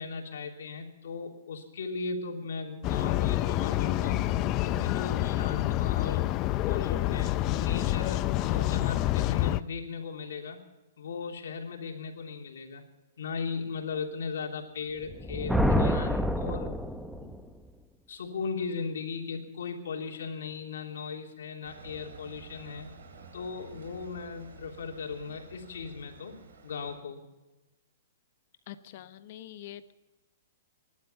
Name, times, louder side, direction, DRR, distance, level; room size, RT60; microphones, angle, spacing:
voice 1, 0.0-4.3 4.6-6.3 6.6-10.6 11.0-12.8 13.2-16.8 17.2-17.3 18.1-22.9 23.3-26.4 26.6-27.2, left 5 dB, 80° left, 2 dB, 3.2 m, -37 dB
sound 1, 2.8-9.6, left 15 dB, 30° left, 0.5 m, -28 dB
Thunder, 15.0-17.4, equal, ahead, 0.9 m, -27 dB
sound 2, 21.6-26.9, right 4 dB, 85° right, 3.9 m, -50 dB
voice 2, 28.7-29.9, left 12 dB, 50° left, 12 dB, 1.0 m, -45 dB
21.0 x 11.5 x 5.7 m, 1.1 s
hypercardioid pair, 155°, 0 cm